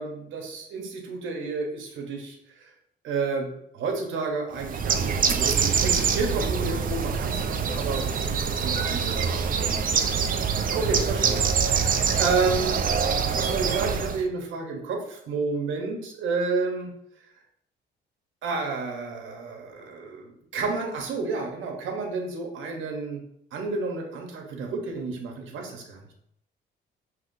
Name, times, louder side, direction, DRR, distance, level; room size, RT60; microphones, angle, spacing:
voice 1, 0.0-2.7 3.0-10.2 10.5-12.8 13.3-16.9 18.4-23.2 23.5-26.0, right 4 dB, 80° right, 2 dB, 1.0 m, -31 dB
Bird, 4.6-14.2, right 6 dB, 45° right, 0.4 m, -25 dB
5.6 x 2.9 x 2.6 m, 0.74 s
cardioid pair, 90°, 20 cm